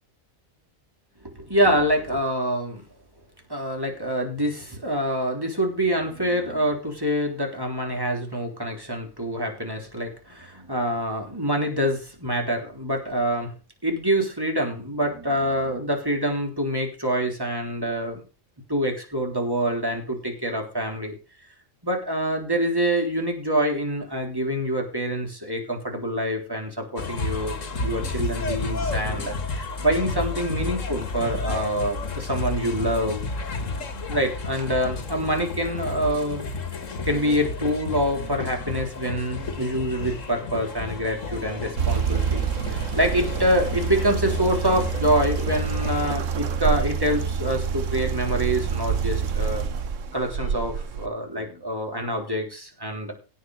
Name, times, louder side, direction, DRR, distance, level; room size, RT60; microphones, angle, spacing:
voice 1, 1.2-2.9 3.5-13.5 13.8-18.2 18.7-21.2 21.8-33.2 34.1-36.5 37.0-49.6 50.1-53.1, equal, 15° right, 2 dB, 3.6 m, -26 dB
sound 1, 27.0-46.2, left 3 dB, 70° left, 1.9 m, -32 dB
sound 2, 41.8-51.1, right 6 dB, 70° right, 1.3 m, -27 dB
16.5 x 5.9 x 6.5 m, 0.34 s
omnidirectional pair, 1.4 m